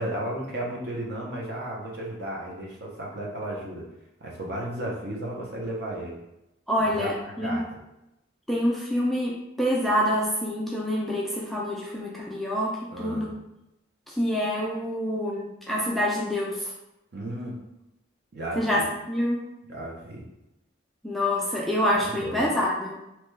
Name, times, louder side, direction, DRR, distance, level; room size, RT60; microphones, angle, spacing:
voice 1, 0.0-3.9 4.2-6.2 6.9-7.8 12.9-13.3 17.1-17.6 18.3-18.9 19.7-20.2 21.9-22.5, right 1 dB, 55° right, -3 dB, 0.7 m, -34 dB
voice 2, 6.7-7.6 8.5-13.3 14.1-16.6 18.6-19.4 21.0-22.9, equal, ahead, -4 dB, 0.3 m, -26 dB
2.9 x 2.2 x 3.2 m, 0.91 s
head